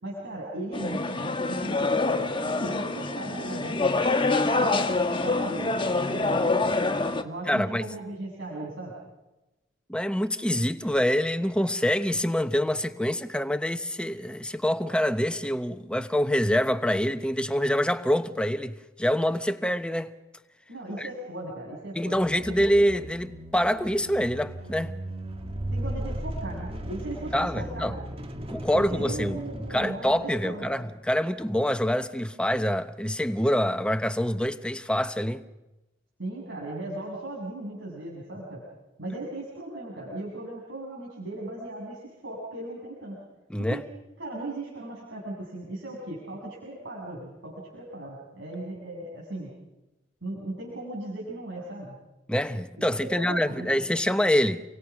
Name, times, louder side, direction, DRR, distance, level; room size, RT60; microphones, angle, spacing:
voice 1, 0.0-4.1 4.6-5.8 6.1-6.7 7.2-9.0 20.7-22.2 22.5-22.6 25.7-28.0 28.7-30.8 36.2-38.6 39.0-43.2 43.6-43.8 44.2-49.5 50.2-52.0 53.0-53.9, right 1 dB, 70° right, 7.5 m, -37 dB
sound 1, 0.7-7.2, left 3 dB, 25° left, 1.5 m, -26 dB
voice 2, 7.5-7.9 9.9-20.1 21.0-21.1 22.0-25.0 27.3-27.9 28.5-29.4 29.7-35.4 43.5-43.8 52.3-54.6, equal, 5° left, 0.9 m, -26 dB
sound 2, 22.1-30.9, right 1 dB, 30° right, 1.9 m, -37 dB
30.0 x 24.0 x 6.1 m
head